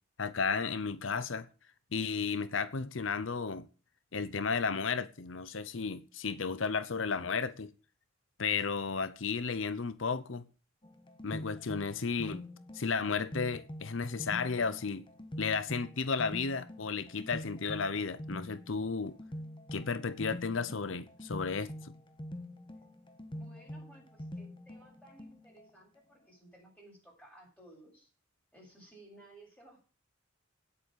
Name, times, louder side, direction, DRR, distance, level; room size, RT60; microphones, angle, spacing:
voice 1, 0.2-1.5 1.9-3.7 4.1-7.7 8.4-10.4 11.2-12.4 12.7-15.0 15.4-19.2 19.7-21.9, left 5 dB, 70° left, 0.8 m, -33 dB
sound 1, 10.8-25.7, equal, 25° left, 1.4 m, -45 dB
voice 2, 23.3-28.1 28.5-29.8, right 1 dB, 5° left, 7.8 m, -57 dB
9.8 x 8.4 x 8.1 m
head